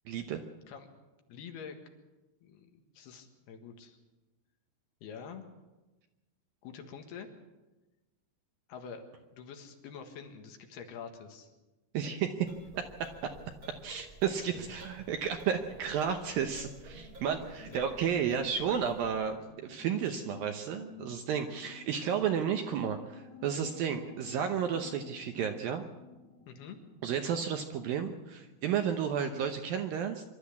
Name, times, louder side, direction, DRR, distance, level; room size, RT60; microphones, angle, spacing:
voice 1, 0.1-0.4 11.9-12.5 13.0-13.1 13.8-25.8 27.0-30.2, right 8 dB, 70° right, 6 dB, 2.3 m, -32 dB
voice 2, 1.3-1.8 2.4-4.0 5.0-5.4 6.6-7.3 8.7-9.0 9.3-11.5 14.5-14.7 17.7-17.8 21.6-21.7 26.5-26.8, left 6 dB, 70° left, 5 dB, 3.5 m, -46 dB
sound 1, 12.4-19.3, right 1 dB, 25° right, 7.0 m, -52 dB
sound 2, 16.9-29.4, left 5 dB, 20° left, 2.8 m, -53 dB
25.5 x 12.5 x 8.3 m, 1.1 s
omnidirectional pair, 5.1 m